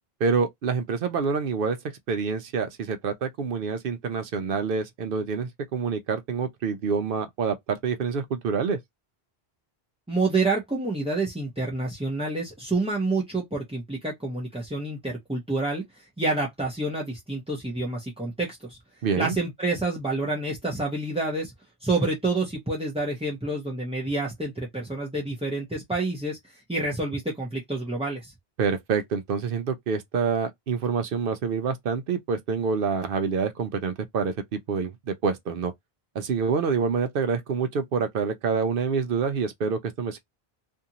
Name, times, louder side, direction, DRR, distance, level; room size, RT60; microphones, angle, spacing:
voice 1, 0.2-1.8 2.1-8.8 19.0-19.4 28.6-35.7 36.1-40.2, right 5 dB, 65° right, 0.8 m, -27 dB
voice 2, 10.1-15.8 16.2-18.8 19.2-21.5 21.8-28.3, right 2 dB, 10° right, 0.5 m, -28 dB
2.6 x 2.5 x 2.7 m
omnidirectional pair, 1.0 m